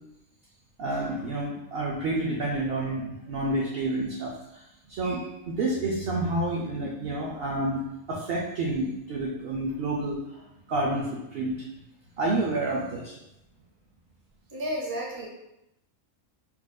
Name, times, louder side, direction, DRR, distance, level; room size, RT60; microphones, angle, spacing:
voice 1, 0.8-7.8 8.1-11.7 12.2-13.2, right 2 dB, 65° right, -3 dB, 0.6 m, -29 dB
voice 2, 14.5-15.3, equal, 25° right, -3 dB, 0.5 m, -32 dB
4.1 x 2.5 x 2.2 m, 0.89 s
omnidirectional pair, 1.4 m